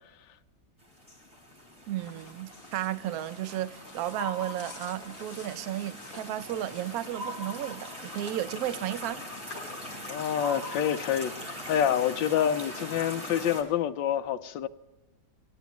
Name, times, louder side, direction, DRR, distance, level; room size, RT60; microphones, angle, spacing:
sound 1, 0.8-13.6, left 1 dB, 15° right, 3.0 m, -42 dB
voice 1, 1.9-9.2, right 12 dB, 75° right, 0.8 m, -33 dB
sound 2, 2.0-9.6, left 3 dB, 30° left, 1.6 m, -51 dB
sound 3, 4.1-5.4 7.1-8.4 10.4-11.6, equal, 40° right, 1.3 m, -41 dB
voice 2, 10.1-14.7, left 9 dB, 75° left, 1.3 m, -27 dB
18.5 x 11.5 x 3.0 m
omnidirectional pair, 2.1 m